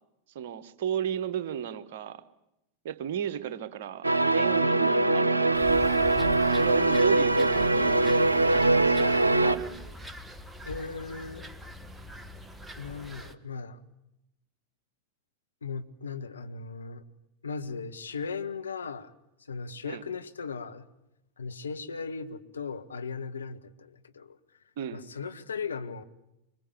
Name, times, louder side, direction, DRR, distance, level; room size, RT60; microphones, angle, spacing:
voice 1, 0.3-2.2 2.8-5.8 6.5-9.7 19.8-20.0 24.8-25.0, right 9 dB, 55° right, 11 dB, 1.3 m, -34 dB
sound 1, 4.0-9.6, right 2 dB, 80° right, 1.0 m, -22 dB
sound 2, 5.5-13.4, right 1 dB, 5° right, 1.4 m, -43 dB
voice 2, 6.1-6.5 10.7-11.5 12.8-13.8 15.6-17.0 17.4-19.1 19.5-20.9 21.4-24.4 24.9-26.0, left 5 dB, 70° left, 8 dB, 1.3 m, -37 dB
25.5 x 22.5 x 8.5 m, 0.87 s
figure-of-eight pair, 90°, 0 cm